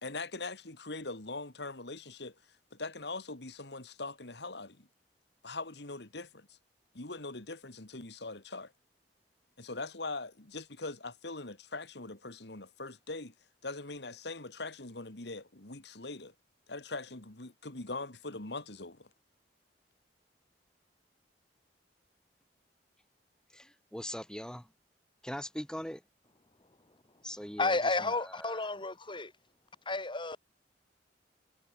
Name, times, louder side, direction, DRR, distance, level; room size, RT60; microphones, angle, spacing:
voice 1, 0.0-2.3 2.7-4.9 5.4-6.6 6.9-8.7 9.6-13.3 13.6-16.3 16.7-19.1, left 3 dB, 65° left, 2.6 m, -42 dB
voice 2, 23.5-24.7 25.2-26.0 27.2-28.6, equal, 5° left, 5.8 m, -41 dB
voice 3, 27.6-29.3 29.9-30.4, left 3 dB, 30° left, 5.2 m, -31 dB
head